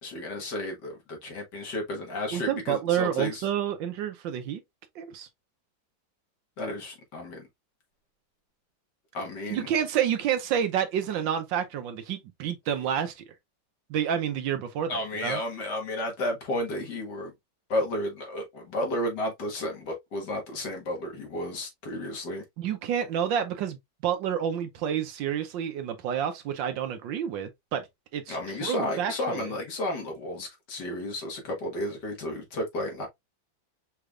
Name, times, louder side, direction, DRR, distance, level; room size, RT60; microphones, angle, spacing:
voice 1, 0.0-3.5 6.6-7.5 9.1-9.7 14.9-17.3 17.7-22.4 28.3-33.1, left 1 dB, 60° left, 2.0 m, -32 dB
voice 2, 2.3-4.6 5.0-5.3 9.5-13.2 13.9-15.4 22.6-23.8 24.0-27.9 28.1-29.5, right 9 dB, 75° right, 1.4 m, -29 dB
5.8 x 3.3 x 2.4 m
omnidirectional pair, 2.1 m